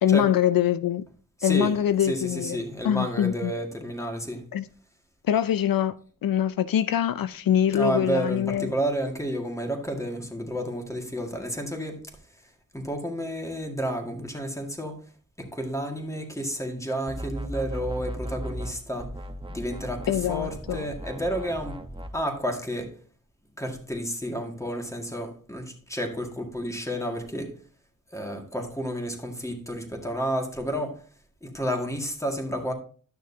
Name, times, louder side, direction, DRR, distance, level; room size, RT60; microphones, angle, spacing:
voice 1, 0.0-1.1 1.4-3.5 4.5-4.7 5.2-5.9 6.2-8.7 20.1-20.8, left 10 dB, 80° left, 0.5 m, -24 dB
voice 2, 1.4-4.5 7.7-12.1 12.7-15.0 15.4-19.1 19.5-21.8 22.1-23.0 23.6-27.6 28.1-31.0 31.4-32.7, equal, 10° left, 2.0 m, -31 dB
sound 1, 17.1-18.7 19.0-22.1, right 1 dB, 15° right, 1.0 m, -36 dB
12.0 x 6.5 x 2.7 m
cardioid pair, 60°, 34 cm